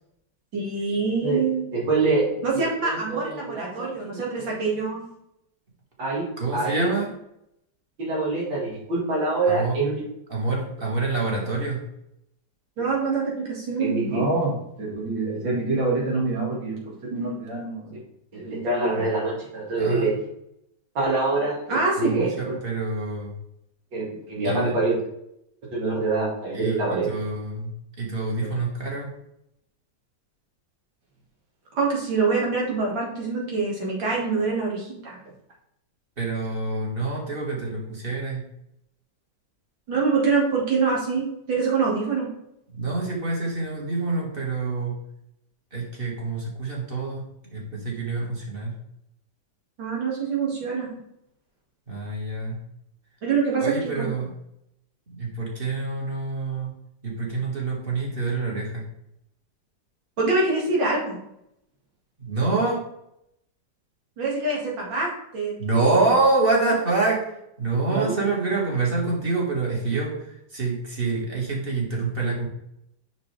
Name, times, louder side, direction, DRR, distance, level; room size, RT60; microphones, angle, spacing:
voice 1, 0.5-5.1 6.0-6.9 8.0-10.0 12.8-14.5 14.8-18.0 18.3-20.1 20.9-22.6 23.9-24.9 25.7-27.1 31.7-35.2 39.9-42.3 49.8-50.9 53.2-54.1 60.2-61.2 64.2-65.5 65.8-66.0 67.9-68.1, right 3 dB, 90° right, -3 dB, 2.8 m, -25 dB
voice 2, 6.4-7.1 9.5-9.8 10.3-11.8 19.8-20.1 22.0-23.4 24.4-24.7 26.5-26.8 27.1-27.7 28.0-29.1 36.2-38.4 42.7-45.0 45.7-47.2 47.5-48.7 51.9-52.6 53.6-54.3 55.1-56.7 57.0-58.8 62.2-62.8 65.6-67.3 67.6-72.5, right 3 dB, 30° right, -2 dB, 1.9 m, -26 dB
6.5 x 6.1 x 3.3 m, 0.79 s
omnidirectional pair, 2.0 m